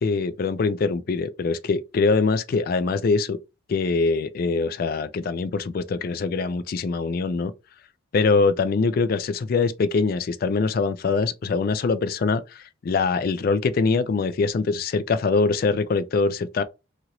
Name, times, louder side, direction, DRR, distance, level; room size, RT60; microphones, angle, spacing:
voice 1, 0.0-3.4 3.7-7.5 8.1-16.6, left 4 dB, 50° left, 0.3 m, -23 dB
2.9 x 2.5 x 2.8 m
head